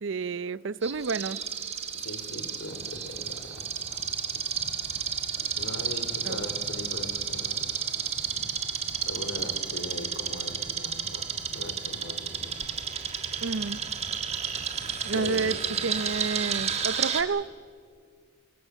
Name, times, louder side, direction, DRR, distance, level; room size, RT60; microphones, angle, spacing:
voice 1, 0.0-1.4 6.2-6.4 13.4-13.8 15.0-15.6 15.8-17.5, right 4 dB, 75° right, 0.6 m, -30 dB
sound 1, 0.8-17.2, right 7 dB, 30° right, 1.7 m, -32 dB
voice 2, 2.0-3.4 3.9-4.0 5.6-7.6 9.0-12.5 15.1-15.9, left 1 dB, 80° left, 3.7 m, -40 dB
sound 2, 2.5-16.8, equal, 40° left, 4.3 m, -48 dB
26.0 x 23.0 x 6.4 m
head